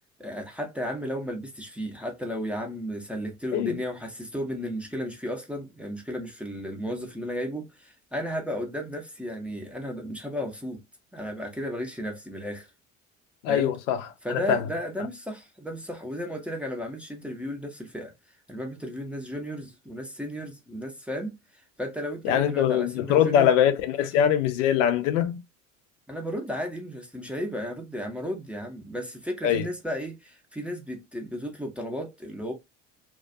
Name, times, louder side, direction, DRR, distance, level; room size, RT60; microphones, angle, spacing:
voice 1, 0.2-10.8 11.1-12.7 13.5-13.7 14.2-18.1 18.5-23.5 26.1-32.5, equal, 5° right, 0.6 m, -34 dB
voice 2, 13.4-14.7 22.2-25.4 29.4-29.7, left 9 dB, 70° left, 0.5 m, -23 dB
2.3 x 2.1 x 2.5 m
hypercardioid pair, 65°, 39 cm